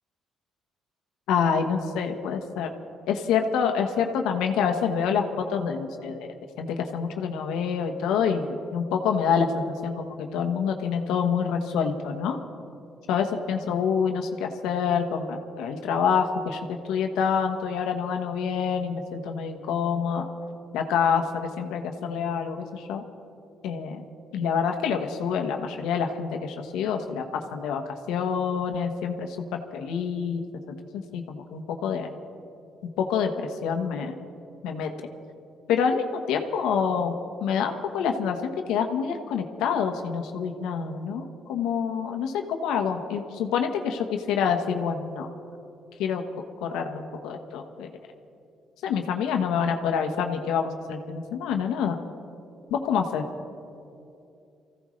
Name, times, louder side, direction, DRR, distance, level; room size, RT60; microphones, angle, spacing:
voice 1, 1.3-2.7 3.1-6.3 6.6-12.4 13.1-20.3 20.7-23.0 23.6-24.0 24.3-30.7 31.1-32.1 33.0-34.1 34.6-34.9 35.7-37.1 37.4-45.3 46.0-46.2 46.6-47.9 48.8-52.0 52.7-53.2, left 6 dB, 90° left, 5 dB, 1.1 m, -27 dB
24.5 x 15.5 x 3.2 m, 2.6 s
cardioid pair, 100°, 0 cm